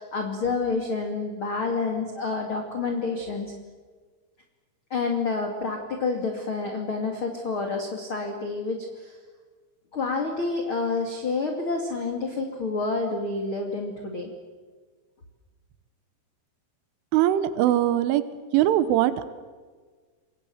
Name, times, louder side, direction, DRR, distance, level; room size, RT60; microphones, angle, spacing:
voice 1, 0.0-3.5 4.9-9.2 9.9-14.3, left 3 dB, 35° left, 3 dB, 2.7 m, -28 dB
voice 2, 17.1-18.2 18.5-19.3, right 13 dB, 85° right, 13 dB, 3.6 m, -21 dB
30.0 x 25.5 x 7.2 m, 1.5 s
omnidirectional pair, 5.5 m